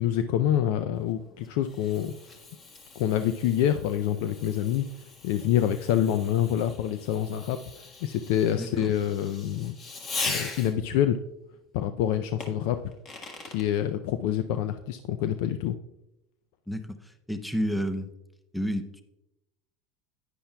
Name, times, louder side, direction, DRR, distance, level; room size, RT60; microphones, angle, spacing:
voice 1, 0.0-2.1 3.0-4.8 5.2-9.8 10.2-11.2 11.7-12.8 13.5-15.8, left 10 dB, 70° left, 10 dB, 0.4 m, -26 dB
Fireworks, 1.0-11.0 12.4-13.7, left 3 dB, 35° left, 1.5 m, -40 dB
voice 2, 8.6-8.9 16.7-18.1 18.5-19.0, equal, 5° left, 9 dB, 0.6 m, -31 dB
10.0 x 9.8 x 2.3 m, 0.89 s
supercardioid pair, 105°, 0 cm